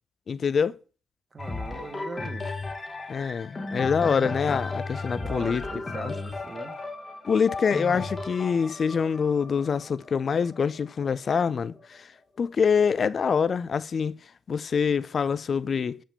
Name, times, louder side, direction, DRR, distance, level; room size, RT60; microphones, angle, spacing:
voice 1, 0.3-0.8 3.1-5.7 6.0-6.1 7.3-12.1 12.4-14.2 14.5-16.0, left 6 dB, 50° left, 0.4 m, -25 dB
voice 2, 1.3-2.4 5.0-6.7, right 3 dB, 40° right, 1.4 m, -39 dB
sound 1, 1.4-11.2 11.8-11.9, left 3 dB, 30° left, 1.1 m, -35 dB
7.1 x 5.0 x 3.3 m
hypercardioid pair, 45°, 0 cm